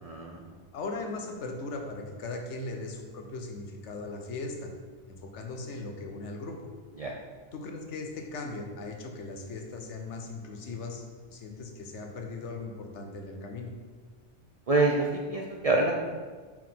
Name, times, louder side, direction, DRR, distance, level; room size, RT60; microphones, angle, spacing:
voice 1, 0.0-0.6 7.0-7.1 14.7-15.9, right 2 dB, 55° right, 0 dB, 0.4 m, -27 dB
voice 2, 0.7-4.7 5.1-6.6 7.5-11.0 11.3-13.7, left 3 dB, 85° left, 3 dB, 1.1 m, -38 dB
5.8 x 5.0 x 3.6 m, 1.5 s
omnidirectional pair, 1.2 m